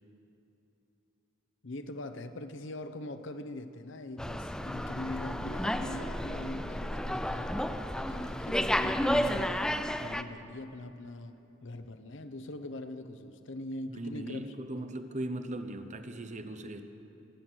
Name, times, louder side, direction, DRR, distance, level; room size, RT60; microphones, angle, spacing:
voice 1, 1.6-7.5 7.9-9.5 10.0-11.3 11.6-14.5 14.8-14.9, left 1 dB, 65° left, 10 dB, 0.8 m, -42 dB
Slam, 4.2-10.2, equal, 5° left, 0.4 m, -32 dB
voice 2, 13.9-16.8, right 1 dB, 35° right, 8 dB, 0.8 m, -38 dB
25.0 x 9.2 x 6.2 m, 2.9 s
head